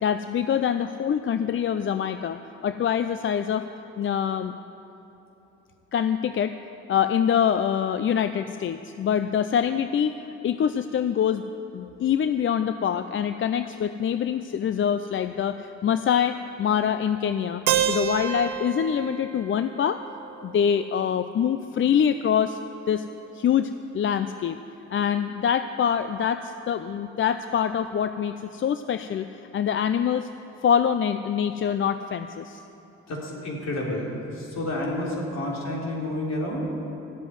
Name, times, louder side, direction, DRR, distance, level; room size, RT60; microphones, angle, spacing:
voice 1, 0.0-3.7 4.0-4.5 5.9-6.6 6.9-10.2 10.4-11.4 11.7-20.0 20.4-22.6 22.9-23.0 23.3-24.6 24.9-29.3 29.5-30.3 30.6-32.6, left 8 dB, 40° left, 10 dB, 0.5 m, -25 dB
Keyboard (musical), 17.7-21.6, right 10 dB, 85° right, 0.8 m, -30 dB
voice 2, 33.1-34.1 34.3-36.6, left 1 dB, 60° left, -3 dB, 3.7 m, -30 dB
14.0 x 8.0 x 9.4 m, 2.9 s
cardioid pair, 90°, 30 cm